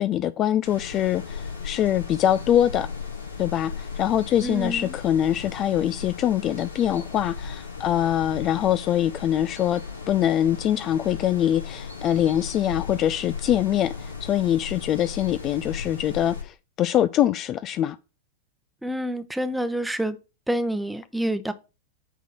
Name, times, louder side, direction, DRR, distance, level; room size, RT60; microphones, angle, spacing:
voice 1, 0.0-2.9 3.4-9.8 10.1-18.0, left 11 dB, 35° left, 0.3 m, -23 dB
sound 1, 0.6-16.4, left 5 dB, 75° left, 1.9 m, -36 dB
voice 2, 4.4-5.0 18.8-20.2 20.5-21.5, right 1 dB, 5° right, 0.8 m, -27 dB
8.3 x 3.7 x 5.6 m
figure-of-eight pair, 90°, 0 cm